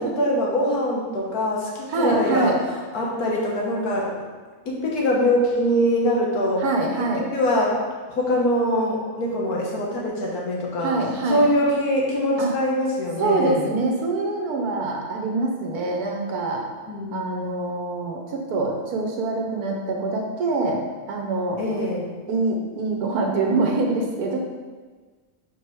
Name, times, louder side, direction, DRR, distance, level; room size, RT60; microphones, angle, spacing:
voice 1, 0.0-2.5 2.9-4.2 4.6-6.6 7.0-7.1 7.3-7.8 8.1-10.9 11.3-13.6 16.9-17.5 21.6-22.1, equal, 75° left, -3 dB, 1.7 m, -23 dB
voice 2, 1.9-2.6 6.6-7.3 10.8-11.5 12.4-12.5 13.2-16.6 17.1-21.6 22.3-24.4, right 3 dB, 75° right, 1 dB, 1.4 m, -25 dB
4.6 x 4.6 x 4.7 m, 1.4 s
omnidirectional pair, 1.6 m